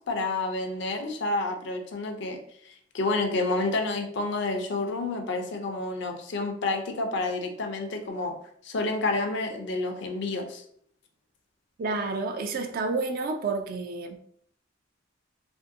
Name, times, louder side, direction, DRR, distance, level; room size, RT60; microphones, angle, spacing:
voice 1, 0.1-2.4 2.6-8.3 8.6-10.6, left 2 dB, 65° left, 0.5 m, -29 dB
voice 2, 11.8-14.2, right 3 dB, 50° right, 0.3 m, -30 dB
2.6 x 2.5 x 2.6 m
head